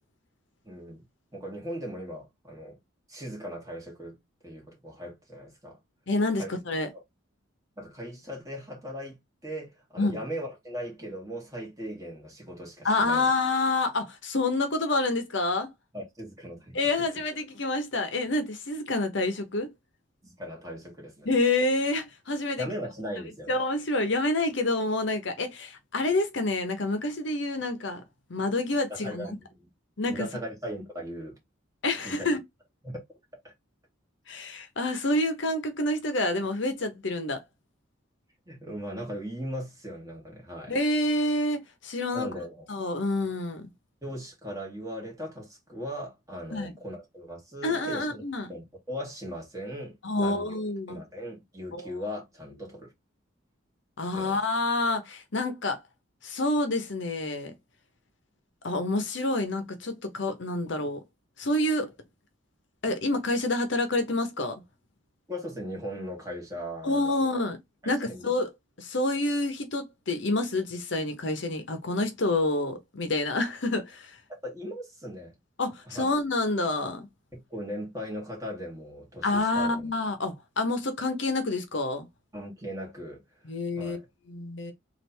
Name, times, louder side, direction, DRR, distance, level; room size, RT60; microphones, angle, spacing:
voice 1, 0.6-1.0 1.3-2.8 3.1-4.2 4.4-5.8 6.3-6.5 6.9-7.0 7.8-13.3 15.9-16.8 20.2-21.3 22.6-23.6 28.9-29.7 30.1-31.4 32.0-32.4 32.8-33.0 33.4-33.5 38.5-40.7 42.1-42.7 44.0-50.6 50.9-52.9 54.1-54.4 65.3-67.1 67.8-68.3 74.4-75.3 75.9-76.0 77.3-79.9 82.3-83.2 83.8-84.0, equal, 15° right, 1.6 m, -38 dB
voice 2, 6.1-6.9 10.0-10.2 12.8-15.7 16.7-19.7 21.3-22.7 23.5-28.0 28.3-29.3 30.0-30.3 31.8-32.4 34.3-37.4 40.7-42.3 42.7-43.7 46.5-46.7 47.6-48.5 50.0-51.0 51.7-52.0 54.0-55.8 56.2-57.5 58.6-61.0 61.4-61.9 62.8-64.6 66.8-67.6 67.9-68.5 68.8-74.2 75.6-77.1 79.2-82.1 83.4-84.0 84.3-84.7, left 2 dB, 65° left, 0.8 m, -28 dB
3.3 x 2.6 x 4.3 m
head